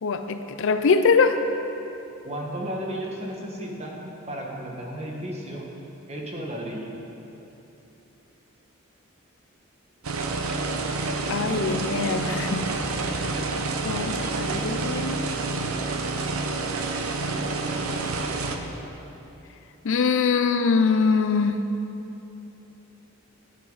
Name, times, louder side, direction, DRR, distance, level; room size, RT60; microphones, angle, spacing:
voice 1, 0.0-1.4 11.3-12.6 13.8-15.2 19.8-21.7, left 5 dB, 65° left, 9 dB, 0.5 m, -23 dB
voice 2, 2.2-5.7 6.1-7.1, right 1 dB, 30° right, -1 dB, 1.5 m, -34 dB
sound 1, 10.0-18.6, right 3 dB, 75° right, 0.8 m, -28 dB
12.0 x 10.5 x 4.0 m, 3.0 s
head